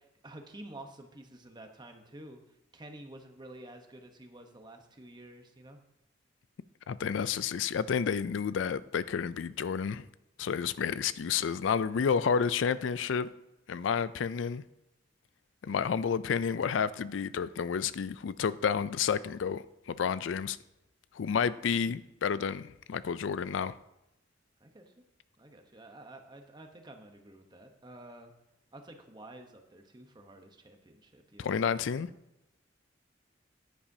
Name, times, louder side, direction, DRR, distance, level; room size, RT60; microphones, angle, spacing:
voice 1, 0.0-2.4 2.7-5.8 24.6-24.9 25.4-28.3 28.7-31.6, right 1 dB, 25° right, 5 dB, 1.0 m, -50 dB
voice 2, 6.9-10.1 10.4-13.3 13.7-14.6 15.6-20.6 21.1-23.7 31.4-32.1, left 6 dB, 85° left, 16 dB, 0.4 m, -30 dB
10.5 x 9.9 x 2.8 m, 0.88 s
head